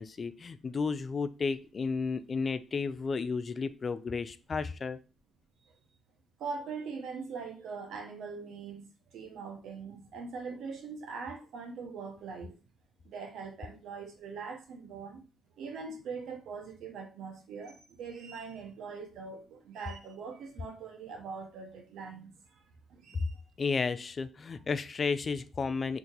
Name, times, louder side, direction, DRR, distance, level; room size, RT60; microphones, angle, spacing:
voice 1, 0.0-5.0 23.1-23.2 23.6-26.0, left 4 dB, 40° left, 13 dB, 0.3 m, -32 dB
voice 2, 6.4-8.9 9.1-12.5 13.0-15.2 15.6-22.3 22.9-23.3, right 5 dB, 75° right, 4 dB, 0.8 m, -42 dB
2.8 x 2.6 x 3.9 m, 0.33 s
cardioid pair, 90°, 0 cm